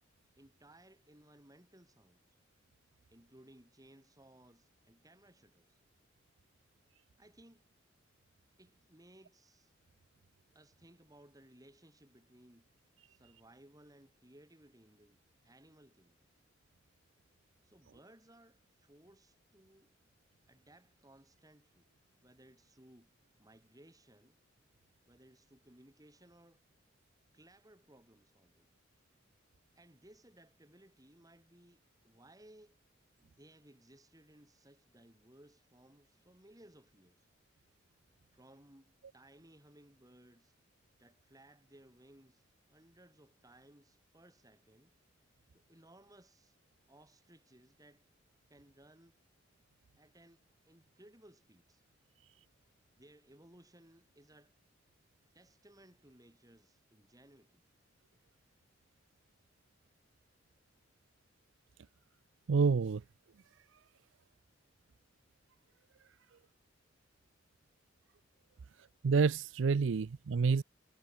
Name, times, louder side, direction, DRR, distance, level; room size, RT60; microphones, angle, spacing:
voice 1, 0.4-2.6 3.1-5.8 7.2-7.7 8.6-9.8 10.5-12.7 13.0-16.3 17.6-19.9 20.5-21.9 22.2-23.1 23.4-24.4 25.1-26.7 27.3-28.7 29.8-32.8 33.2-37.3 37.9-38.0 38.3-40.6 41.0-44.9 45.5-46.6 46.9-48.1 48.5-49.2 50.0-51.8 52.6-54.5 55.3-57.6, right 1 dB, 20° right, 3.6 m, -62 dB
voice 2, 62.5-63.0 69.0-70.6, right 5 dB, 75° right, 0.4 m, -28 dB
head